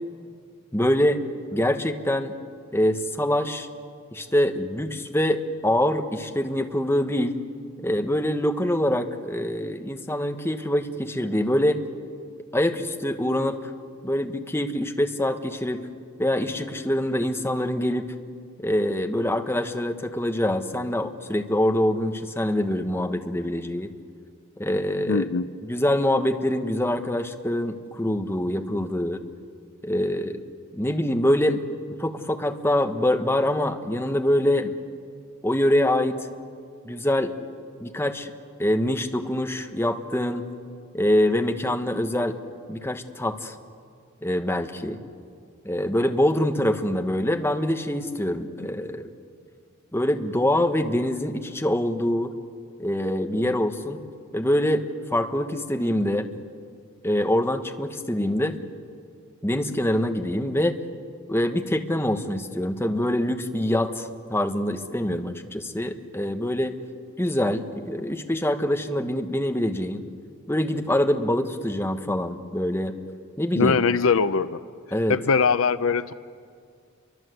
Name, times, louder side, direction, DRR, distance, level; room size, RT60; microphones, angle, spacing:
voice 1, 0.7-1.2 1.5-2.3 2.7-3.7 4.1-7.4 7.8-11.8 12.5-13.7 14.0-15.9 16.2-18.1 18.6-23.9 24.6-25.3 25.6-29.2 29.8-30.4 30.7-31.6 32.0-34.7 35.4-36.2 36.8-37.3 37.8-38.3 38.6-40.4 40.9-42.4 42.7-43.5 44.2-45.0 45.6-49.1 49.9-52.3 52.8-54.0 54.3-56.3 57.0-58.6 59.4-60.8 61.3-66.8 67.2-70.0 70.5-72.9 73.4-73.8 74.9-75.2, left 1 dB, 10° left, 6 dB, 1.3 m, -24 dB
voice 2, 25.1-25.4 73.5-74.6 75.1-76.1, left 5 dB, 70° left, 13 dB, 0.6 m, -21 dB
29.0 x 24.0 x 8.0 m, 2.2 s
head